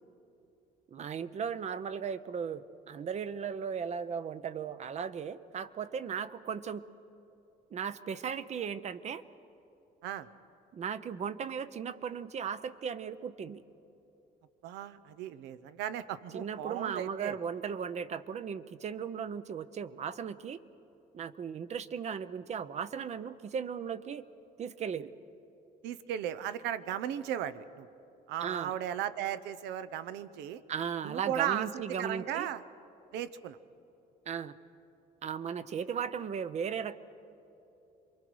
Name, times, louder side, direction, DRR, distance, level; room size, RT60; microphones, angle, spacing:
voice 1, 0.9-6.8 7.7-9.2 10.7-13.6 16.3-20.6 21.1-24.2 24.6-25.1 28.4-28.7 30.7-32.5 34.3-34.6 35.2-37.0, right 7 dB, 40° right, 14 dB, 0.7 m, -36 dB
voice 2, 14.6-17.4 25.8-27.9 28.3-30.6 31.0-32.6 33.1-33.6, right 10 dB, 90° right, 14 dB, 0.7 m, -36 dB
27.5 x 23.0 x 4.7 m, 2.9 s
cardioid pair, 110°, 17 cm